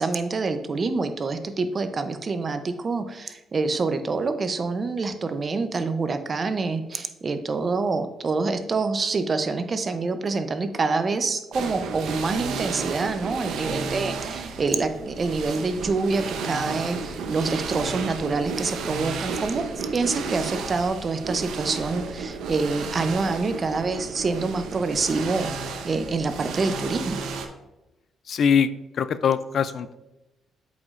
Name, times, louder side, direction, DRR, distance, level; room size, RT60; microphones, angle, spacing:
voice 1, 0.0-27.2, right 3 dB, 40° right, 9 dB, 0.6 m, -26 dB
sound 1, 11.5-27.5, right 5 dB, 80° right, 0.6 m, -33 dB
voice 2, 28.3-28.7 29.0-30.0, left 7 dB, 60° left, 14 dB, 0.3 m, -22 dB
8.0 x 5.1 x 2.4 m, 1.0 s
cardioid pair, 90°, 0 cm